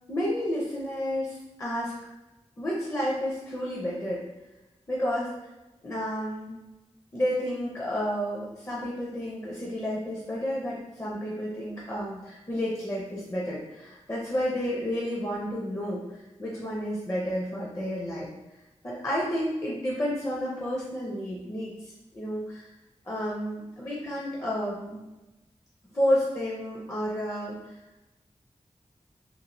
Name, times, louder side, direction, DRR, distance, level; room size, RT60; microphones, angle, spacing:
voice 1, 0.1-1.9 2.6-4.2 4.9-5.5 5.8-6.6 7.1-18.3 18.8-22.6 23.0-25.0 25.9-27.7, equal, 25° left, -5 dB, 0.5 m, -31 dB
3.0 x 2.4 x 2.6 m, 1.0 s
wide cardioid pair, 90°, 12 cm